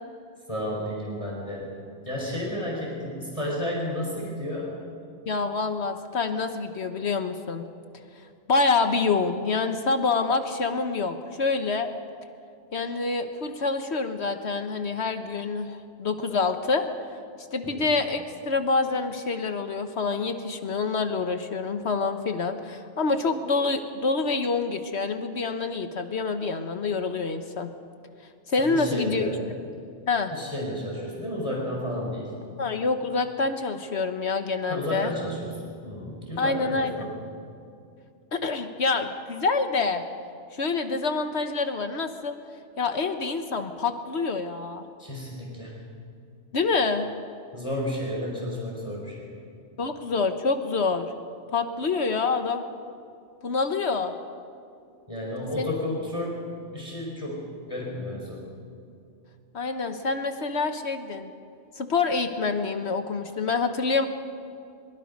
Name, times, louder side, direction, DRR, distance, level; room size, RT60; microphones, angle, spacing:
voice 1, 0.5-1.7 2.0-4.7 17.6-17.9 28.6-29.4 30.3-32.3 34.7-37.1 45.0-45.8 47.5-49.3 55.1-56.4 56.7-58.4, left 1 dB, 25° left, -3 dB, 4.8 m, -32 dB
voice 2, 5.3-7.7 8.5-11.9 12.7-16.9 17.5-27.7 28.5-29.3 30.1-30.3 32.6-35.1 36.4-36.9 38.3-40.0 40.5-42.4 42.8-44.8 46.5-47.1 49.8-51.1 51.5-52.6 53.4-54.1 55.6-55.7 59.5-61.3 61.8-64.1, left 4 dB, 65° left, 7 dB, 1.3 m, -26 dB
23.5 x 23.0 x 5.3 m, 2.4 s
omnidirectional pair, 1.3 m